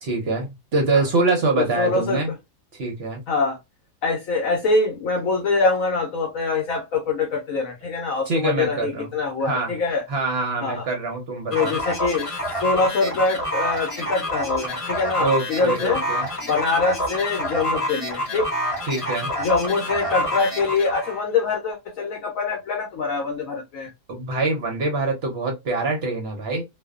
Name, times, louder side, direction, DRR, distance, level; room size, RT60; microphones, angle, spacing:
voice 1, 0.0-2.3 2.7-3.2 8.3-9.1 9.4-9.7 10.1-11.8 15.2-16.3 18.9-19.3 24.1-26.6, right 3 dB, 55° right, 0.7 m, -24 dB
voice 2, 1.8-2.2 3.3-3.6 4.0-10.0 10.6-10.9 11.5-16.0 16.4-18.5 19.4-23.9, left 4 dB, 65° left, 1.0 m, -24 dB
sound 1, 11.5-21.2, equal, 25° left, 0.8 m, -27 dB
2.6 x 2.3 x 2.3 m
omnidirectional pair, 1.7 m